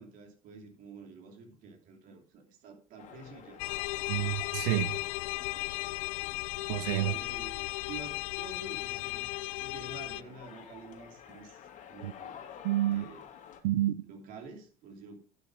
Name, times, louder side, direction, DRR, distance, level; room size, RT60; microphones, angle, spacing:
voice 1, 0.0-3.6 7.0-9.3 9.6-12.4 12.9-13.3 14.0-15.2, right 4 dB, 55° right, 3.0 m, -49 dB
sound 1, 3.0-13.6, left 8 dB, 50° left, 2.5 m, -51 dB
sound 2, 3.6-10.2, left 20 dB, 80° left, 0.5 m, -36 dB
voice 2, 4.1-5.0 6.7-7.2 12.0-12.1 12.6-13.1 13.6-13.9, right 15 dB, 75° right, 0.6 m, -29 dB
11.5 x 6.4 x 5.0 m
supercardioid pair, 105°, 17 cm